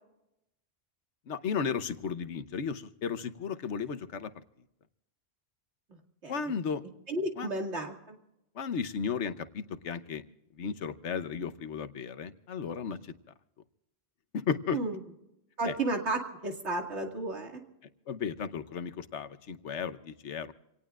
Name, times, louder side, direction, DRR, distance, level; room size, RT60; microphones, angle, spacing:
voice 1, 1.3-4.3 6.3-6.8 7.4-7.5 8.5-10.2 10.6-13.1 14.3-15.0 15.7-15.8 18.1-20.5, left 6 dB, 85° left, 12 dB, 1.2 m, -34 dB
voice 2, 7.1-8.2 14.7-15.0 15.6-17.6, right 2 dB, 80° right, 2 dB, 2.6 m, -33 dB
27.5 x 18.0 x 2.5 m, 0.85 s
omnidirectional pair, 1.1 m